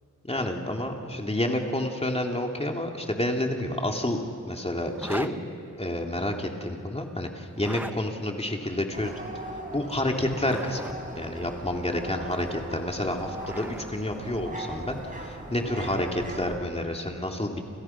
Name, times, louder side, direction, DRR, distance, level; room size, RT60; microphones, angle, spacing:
voice 1, 0.3-5.4 5.8-9.1 9.7-17.6, left 1 dB, 20° left, 2 dB, 3.0 m, -29 dB
Zipper (clothing), 4.9-5.3 7.5-8.0 10.1-11.0 12.8-13.9, right 1 dB, 5° right, 0.8 m, -38 dB
sound 1, 8.9-16.6, right 1 dB, 25° right, 5.0 m, -39 dB
29.0 x 28.5 x 6.0 m, 2.5 s
wide cardioid pair, 95°, 31 cm